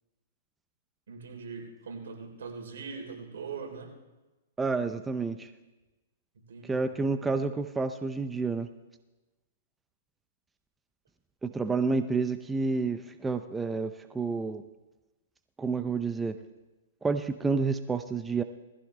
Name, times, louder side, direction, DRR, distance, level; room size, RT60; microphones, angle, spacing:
voice 1, 1.1-3.9 6.3-6.9, right 5 dB, 80° right, 2 dB, 3.3 m, -41 dB
voice 2, 4.6-5.5 6.7-8.7 11.4-14.6 15.6-16.4 17.0-18.4, right 4 dB, 10° right, 9 dB, 0.5 m, -29 dB
20.0 x 15.0 x 3.3 m, 1.1 s
hypercardioid pair, 150°, 0 cm